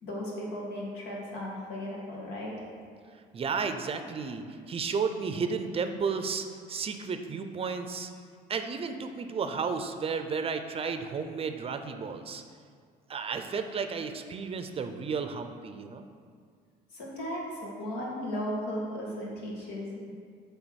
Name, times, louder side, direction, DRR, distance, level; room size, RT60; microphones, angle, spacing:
voice 1, 0.0-2.5 16.9-20.1, equal, 85° left, -4 dB, 2.0 m, -36 dB
voice 2, 3.3-8.1 8.5-12.4 13.1-16.0, right 5 dB, 35° right, 7 dB, 0.5 m, -33 dB
7.8 x 3.5 x 6.3 m, 2.1 s
cardioid pair, 110°, 17 cm